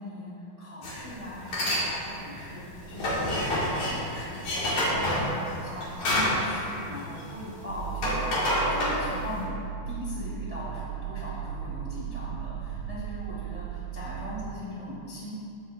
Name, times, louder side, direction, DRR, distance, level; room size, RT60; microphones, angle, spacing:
voice 1, 0.0-9.6 9.8-15.3, left 1 dB, 40° right, -10 dB, 0.9 m, -39 dB
sound 1, 0.8-1.0 1.4-1.8 2.2-7.5 7.8-9.4, left 1 dB, 60° left, 2.9 m, -28 dB
sound 2, 7.7-14.5, right 9 dB, 90° right, 2.4 m, -36 dB
15.5 x 5.7 x 2.4 m, 2.6 s
omnidirectional pair, 4.1 m